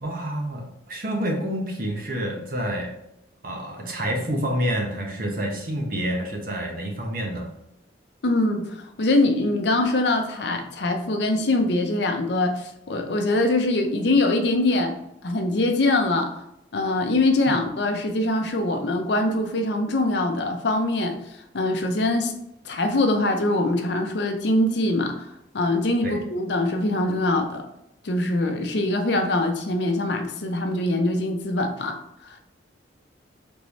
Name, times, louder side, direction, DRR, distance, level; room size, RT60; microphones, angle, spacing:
voice 1, 0.0-2.9 3.4-7.5 17.5-17.6 26.0-26.2, equal, 50° right, 1 dB, 0.9 m, -28 dB
voice 2, 8.2-14.9 15.2-16.3 16.7-21.2 21.5-22.3 22.6-27.6 28.0-32.0 32.2-32.3, left 2 dB, 65° left, 5 dB, 0.6 m, -23 dB
3.5 x 3.2 x 4.0 m, 0.81 s
head